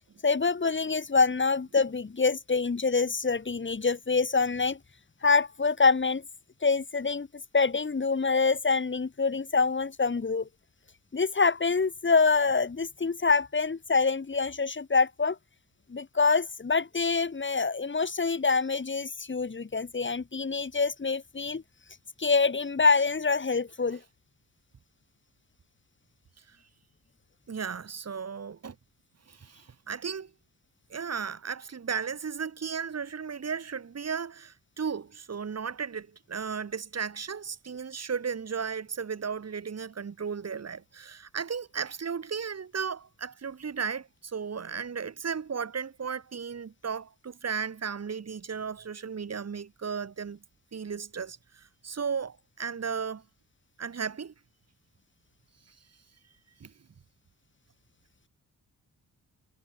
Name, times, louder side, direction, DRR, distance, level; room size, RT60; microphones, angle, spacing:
voice 1, 0.2-4.8 5.2-6.2 6.6-7.3 7.5-10.5 11.1-15.4 15.9-21.6 22.2-24.0, left 4 dB, 35° left, 5.5 m, -26 dB
voice 2, 27.5-28.7 29.3-30.3 30.9-50.4 50.7-53.2 53.8-54.3 56.6-56.7, right 6 dB, 50° right, 5.3 m, -35 dB
cardioid pair, 85°, 33 cm